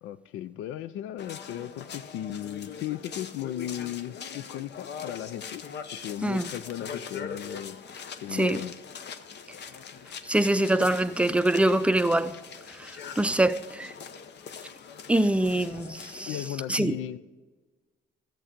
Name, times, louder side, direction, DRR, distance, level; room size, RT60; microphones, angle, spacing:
voice 1, 0.0-5.6 6.0-7.8 8.2-8.8 16.1-17.2, left 12 dB, 90° left, 0.4 m, -36 dB
sound 1, 1.2-16.5, left 6 dB, 60° left, 0.8 m, -42 dB
voice 2, 6.2-6.5 8.3-8.6 10.2-12.4 12.8-13.9 15.1-16.4 16.7-16.9, right 1 dB, 5° right, 0.5 m, -24 dB
14.0 x 7.5 x 5.1 m
cardioid pair, 90°, 20 cm